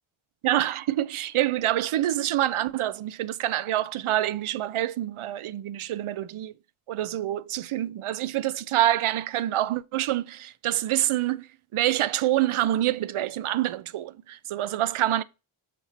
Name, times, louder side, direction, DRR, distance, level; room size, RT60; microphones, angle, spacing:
voice 1, 0.4-6.5 6.9-11.5 11.7-15.2, right 13 dB, 80° right, 0.6 m, -26 dB
7.4 x 4.2 x 4.1 m
wide cardioid pair, 145°, 49 cm